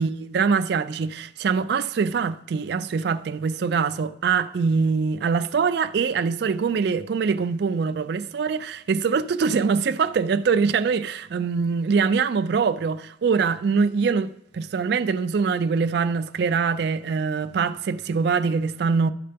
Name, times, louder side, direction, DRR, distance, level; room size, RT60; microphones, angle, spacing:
voice 1, 0.0-19.1, right 5 dB, 55° right, 0.3 m, -23 dB
12.0 x 6.6 x 3.4 m
head